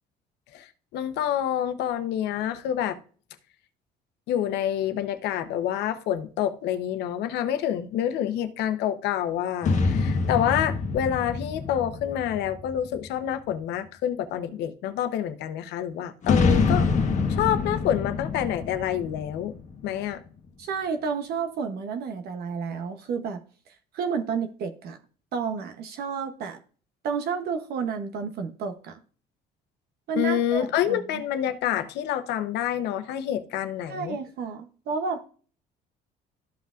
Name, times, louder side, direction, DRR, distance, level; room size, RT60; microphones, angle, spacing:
voice 1, 0.5-3.0 4.3-16.9 17.3-19.5 19.8-20.2 30.1-34.2, left 10 dB, 85° left, 0.9 m, -27 dB
sound 1, 9.6-13.3 16.2-20.0, left 4 dB, 45° left, 1.2 m, -26 dB
voice 2, 20.6-23.4 23.9-25.0 25.3-26.6 27.0-29.0 30.1-31.2 33.9-35.3, right 5 dB, 70° right, 0.9 m, -31 dB
13.5 x 5.7 x 2.5 m
cardioid pair, 110°, 17 cm